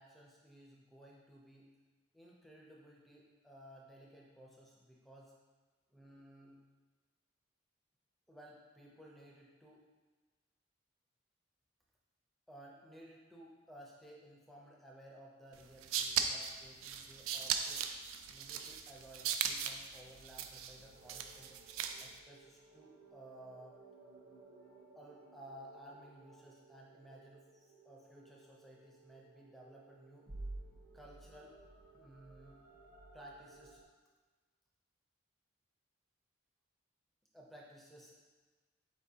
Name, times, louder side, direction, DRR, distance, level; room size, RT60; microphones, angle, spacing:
voice 1, 0.0-1.7 2.1-5.4 5.9-6.6 8.3-9.9 12.5-17.9 18.3-21.5 22.0-23.8 25.0-30.3 30.9-31.6 31.9-32.6 33.1-33.8 37.3-38.2, right 1 dB, ahead, -2 dB, 0.5 m, -56 dB
sound 1, 15.6-22.2, right 7 dB, 90° right, 0.3 m, -38 dB
sound 2, 20.8-33.8, right 2 dB, 45° right, 0.7 m, -55 dB
4.5 x 3.4 x 2.7 m, 1.3 s
head